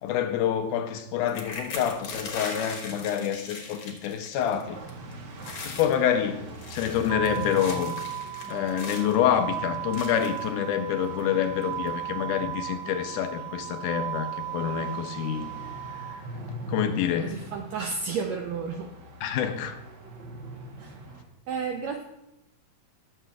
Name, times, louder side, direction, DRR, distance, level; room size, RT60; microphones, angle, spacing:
voice 1, 0.0-4.8 5.6-8.0 8.5-15.5 15.9-16.1 16.7-17.4 19.2-19.8, left 9 dB, 80° left, 2.1 m, -27 dB
sound 1, 1.3-4.6 4.9-5.1 5.4-5.9 6.5-9.2 9.9-10.5 11.2-11.3 11.6-11.9, left 4 dB, 55° left, 1.8 m, -39 dB
sound 2, 4.5-21.2, right 2 dB, 55° right, 1.4 m, -43 dB
sound 3, 7.1-16.1, right 12 dB, 75° right, 1.8 m, -36 dB
voice 2, 17.2-18.9 20.8-21.0 21.5-22.0, right 5 dB, 90° right, 1.5 m, -32 dB
19.0 x 6.7 x 2.4 m
omnidirectional pair, 3.8 m